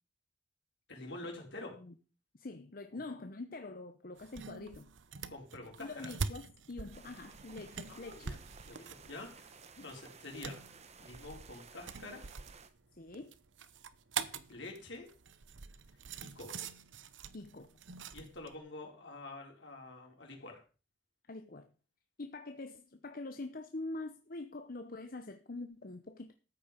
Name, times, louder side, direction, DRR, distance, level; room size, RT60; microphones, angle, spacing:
voice 1, 0.9-1.7 5.3-6.1 7.9-8.4 8.6-9.6 9.8-10.6 11.0-12.3 14.2-15.1 16.2-16.7 18.1-20.6, left 2 dB, 70° left, 1 dB, 4.4 m, -47 dB
voice 2, 2.3-4.9 5.8-8.3 9.8-9.9 12.9-13.3 17.3-17.7 21.3-21.7 22.2-26.3, left 2 dB, 50° left, 7 dB, 0.9 m, -45 dB
sound 1, 4.2-18.5, right 5 dB, 80° right, 0.9 m, -45 dB
sound 2, 6.9-12.7, right 5 dB, 35° right, 1.1 m, -56 dB
13.5 x 8.8 x 5.2 m, 0.36 s
head